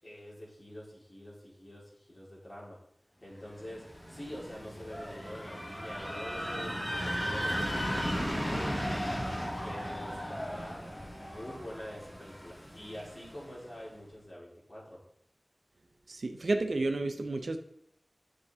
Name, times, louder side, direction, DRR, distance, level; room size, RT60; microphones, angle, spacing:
voice 1, 0.0-2.8 3.2-8.9 9.6-15.0, equal, 40° left, -6 dB, 3.7 m, -46 dB
sound 1, 3.6-13.5, equal, 20° left, 1.6 m, -36 dB
voice 2, 16.1-17.6, right 2 dB, 80° right, 7 dB, 0.7 m, -31 dB
8.1 x 6.6 x 3.6 m, 0.70 s
wide cardioid pair, 70°, 0 cm